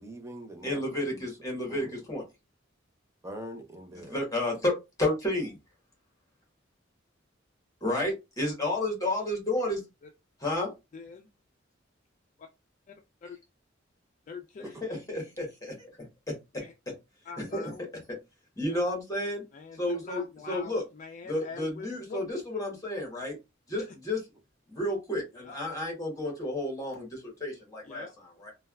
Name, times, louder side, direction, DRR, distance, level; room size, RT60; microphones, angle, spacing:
voice 1, 0.0-1.4 1.6-2.0 3.2-4.2 14.7-14.8, right 1 dB, 15° right, 0.6 m, -43 dB
voice 2, 0.6-2.2 4.0-4.7 5.0-5.5 7.8-9.8 10.4-10.7 14.6-15.9 16.3-16.6 17.4-17.7 18.6-19.4 19.8-20.8 21.2-23.3 23.7-24.2 24.7-28.5, left 1 dB, 20° left, 1.2 m, -31 dB
voice 3, 10.9-11.3 12.4-12.5 12.9-13.0 13.2-13.4 14.3-14.8 16.6-16.7 17.3-17.8 18.6-18.8 19.5-22.4 23.8-23.9 25.3-25.6 27.8-28.1, left 5 dB, 40° left, 0.3 m, -44 dB
3.2 x 2.2 x 2.3 m
head